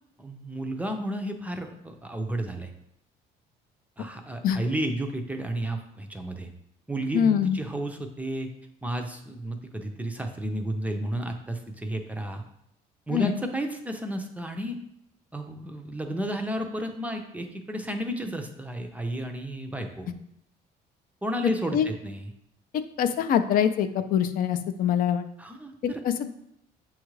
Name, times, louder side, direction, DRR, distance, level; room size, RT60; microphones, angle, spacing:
voice 1, 0.2-2.7 4.0-6.5 6.9-8.5 8.8-12.4 13.1-14.8 15.3-20.1 21.2-22.3 25.4-26.0, right 1 dB, 10° right, 4 dB, 0.4 m, -32 dB
voice 2, 7.1-7.6 13.1-13.3 21.7-21.9 23.0-25.2 26.2-26.3, left 8 dB, 60° left, 10 dB, 0.4 m, -24 dB
7.1 x 2.4 x 3.1 m, 0.75 s
cardioid pair, 110°, 17 cm